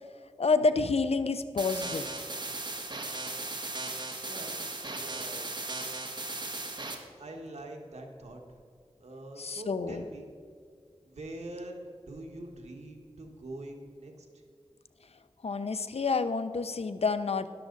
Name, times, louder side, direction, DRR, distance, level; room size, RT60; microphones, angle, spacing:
voice 1, 0.4-2.0 9.4-10.0 15.4-17.5, left 4 dB, 65° left, 11 dB, 0.6 m, -28 dB
sound 1, 1.6-6.9, right 2 dB, 40° right, 1.4 m, -37 dB
voice 2, 4.2-4.6 4.9-5.5 7.2-8.4 9.0-10.3 11.0-14.4, right 1 dB, 85° right, 2 dB, 1.5 m, -44 dB
12.5 x 11.5 x 4.0 m, 2.2 s
wide cardioid pair, 60°, 11 cm